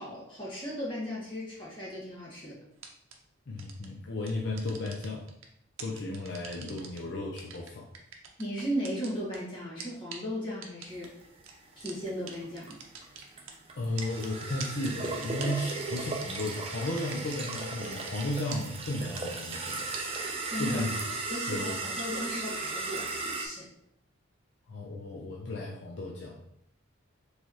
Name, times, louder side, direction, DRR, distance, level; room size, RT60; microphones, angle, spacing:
voice 1, 0.0-2.6 8.4-11.1 11.7-12.8 20.4-20.8 21.3-23.7, equal, 25° left, -7 dB, 1.6 m, -36 dB
sound 1, 2.8-3.1 3.6-3.9 4.3-5.4 5.8-7.0 7.4-9.4 9.8-9.9 10.1-10.2 10.6-11.1 11.5-11.6 11.9-12.0 12.3-12.4 12.6-13.5 14.0-17.6 17.8-18.2 18.5-18.6 18.9-19.0 19.2-20.2, right 6 dB, 80° right, 0.7 m, -42 dB
voice 2, 3.5-5.3 5.8-7.9 13.8-19.9 20.6-21.1 21.4-21.7 24.7-26.4, left 1 dB, 55° left, -1 dB, 0.5 m, -34 dB
sound 2, 11.0-23.5, right 3 dB, 25° right, 0.5 m, -36 dB
4.4 x 3.3 x 2.9 m, 0.74 s
head